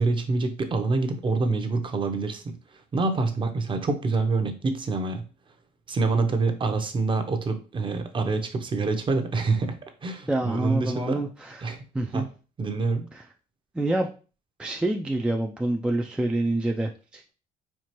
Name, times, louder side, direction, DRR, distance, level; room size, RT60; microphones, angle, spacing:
voice 1, 0.0-2.6 2.9-5.2 5.9-9.8 10.0-11.2 11.6-11.8 12.1-12.3 12.6-13.1, right 3 dB, 30° right, 6 dB, 0.7 m, -26 dB
voice 2, 10.3-12.3 13.7-14.1 14.6-17.3, right 1 dB, 5° right, 2 dB, 0.3 m, -27 dB
4.5 x 2.4 x 2.9 m, 0.35 s
cardioid pair, 110°, 17 cm